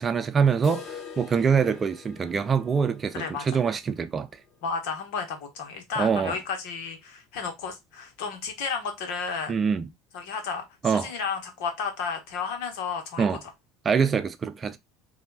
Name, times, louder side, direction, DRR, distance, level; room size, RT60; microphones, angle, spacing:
voice 1, 0.0-4.3 6.0-6.4 9.5-9.9 10.8-11.1 13.2-13.4 13.8-14.8, right 6 dB, 30° right, 0.6 m, -24 dB
sound 1, 0.6-6.4 6.7-6.8 7.2-7.3 7.8-7.9 8.8-8.9, left 7 dB, 45° left, 0.9 m, -45 dB
voice 2, 3.1-3.6 4.6-9.5 10.1-13.3, left 5 dB, 75° left, 1.4 m, -32 dB
3.3 x 2.8 x 4.1 m
supercardioid pair, 100°, 0 cm